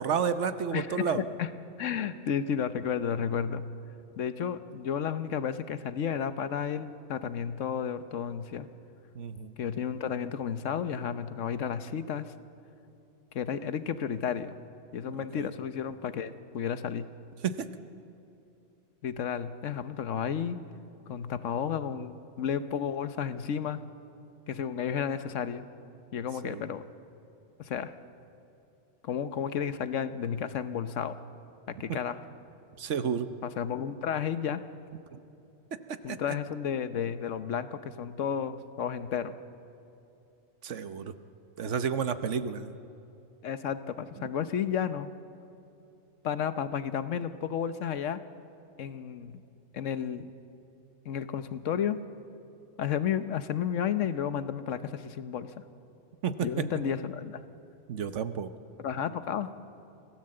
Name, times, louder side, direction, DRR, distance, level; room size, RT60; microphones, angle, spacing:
voice 1, 0.0-1.2 9.1-9.5 15.1-15.5 17.4-17.7 26.4-26.6 31.9-32.0 32.8-33.3 35.1-35.2 35.9-36.2 40.6-41.1 41.6-42.8 44.2-44.3 56.2-56.7 57.9-58.5, right 7 dB, 70° right, 11 dB, 1.2 m, -31 dB
voice 2, 0.7-1.5 1.8-3.6 4.2-8.7 9.6-12.3 13.3-14.5 14.9-17.1 19.0-20.6 21.1-23.8 24.5-25.6 26.1-26.8 27.6-27.9 29.0-31.1 31.7-32.2 33.4-34.6 36.0-39.3 43.4-45.1 46.2-48.2 48.8-49.4 49.7-50.3 51.1-52.0 52.8-55.5 56.4-57.4 58.8-59.5, left 8 dB, 75° left, 12 dB, 1.2 m, -32 dB
25.5 x 17.5 x 7.7 m, 2.8 s
omnidirectional pair, 1.3 m